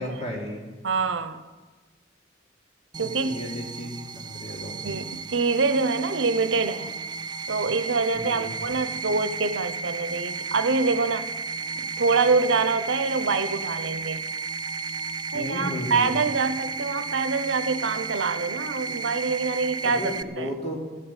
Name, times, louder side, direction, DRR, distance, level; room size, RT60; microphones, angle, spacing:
voice 1, 0.0-0.7 2.9-4.8 8.1-8.7 15.3-16.1 19.8-20.8, left 1 dB, 35° left, -2 dB, 3.0 m, -34 dB
voice 2, 0.8-1.4 3.0-3.4 4.7-6.9 7.5-11.3 11.8-14.2 15.3-20.5, right 4 dB, 85° right, 12 dB, 0.8 m, -25 dB
sound 1, 2.9-20.2, right 4 dB, 25° right, 0.4 m, -33 dB
14.5 x 8.3 x 9.0 m, 1.3 s
head